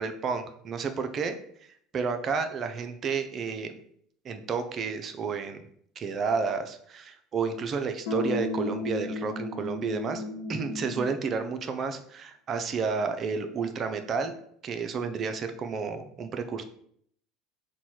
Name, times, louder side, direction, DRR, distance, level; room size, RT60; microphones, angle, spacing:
voice 1, 0.0-1.4 1.9-3.7 4.2-5.6 6.0-10.2 10.5-14.3 14.6-16.6, right 5 dB, 40° right, 8 dB, 0.5 m, -31 dB
sound 1, 8.1-11.2, left 2 dB, 70° left, 0.6 m, -33 dB
4.1 x 2.3 x 4.4 m, 0.65 s
hypercardioid pair, 70°, 0 cm